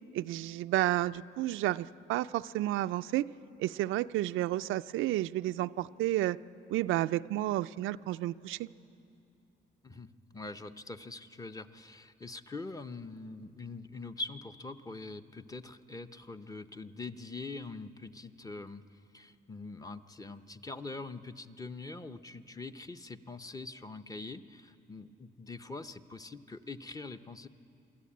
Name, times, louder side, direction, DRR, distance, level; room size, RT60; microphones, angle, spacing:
voice 1, 0.1-3.3 3.6-6.4 6.7-8.7, right 15 dB, 85° right, 12 dB, 0.4 m, -31 dB
voice 2, 9.8-18.8 19.1-27.5, left 3 dB, 15° left, 9 dB, 0.7 m, -43 dB
24.0 x 13.5 x 8.6 m, 2.7 s
cardioid pair, 90°, 20 cm